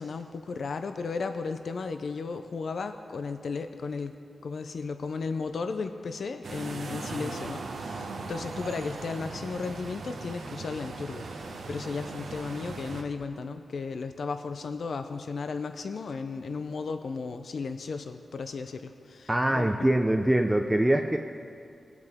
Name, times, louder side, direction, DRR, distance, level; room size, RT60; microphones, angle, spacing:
voice 1, 0.0-4.2 4.4-19.8, left 4 dB, 70° left, 8 dB, 0.5 m, -35 dB
sound 1, 6.4-13.0, right 3 dB, 90° right, 1.0 m, -38 dB
voice 2, 19.3-21.2, right 1 dB, 10° right, 4 dB, 0.5 m, -23 dB
19.5 x 8.2 x 3.5 m, 2.4 s
wide cardioid pair, 90°, 0 cm